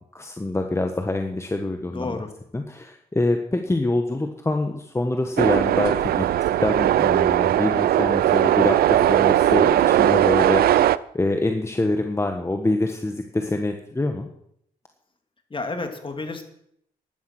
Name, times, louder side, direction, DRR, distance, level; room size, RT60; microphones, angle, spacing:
voice 1, 0.1-2.1 2.5-6.2 6.6-10.8 11.1-14.3, left 2 dB, 15° left, 5 dB, 1.5 m, -25 dB
voice 2, 1.9-2.3 15.5-16.4, left 3 dB, 35° left, 6 dB, 2.6 m, -30 dB
sound 1, 5.4-11.0, right 12 dB, 85° right, 0.5 m, -19 dB
14.5 x 11.5 x 6.1 m, 0.71 s
cardioid pair, 80°, 15 cm